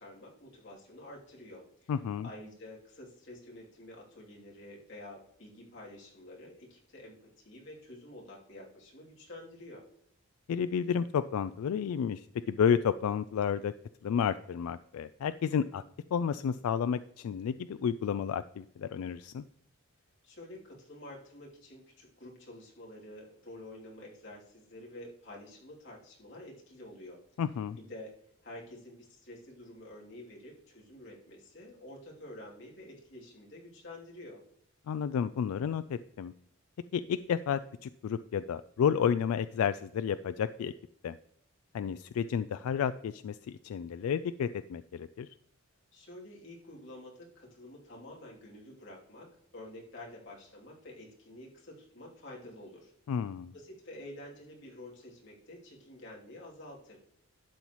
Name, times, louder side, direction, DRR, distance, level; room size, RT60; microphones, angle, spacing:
voice 1, 0.0-1.9 2.2-9.8 20.2-27.2 27.8-28.2 28.4-34.4 45.9-52.9 53.5-57.0, left 1 dB, 55° left, -3 dB, 2.9 m, -49 dB
voice 2, 1.9-2.3 10.5-13.7 14.0-15.8 16.1-19.4 27.4-27.8 34.9-36.3 36.9-40.7 41.0-41.2 41.7-45.3 53.1-53.5, left 7 dB, 80° left, 13 dB, 0.3 m, -31 dB
12.0 x 7.1 x 3.0 m, 0.65 s
head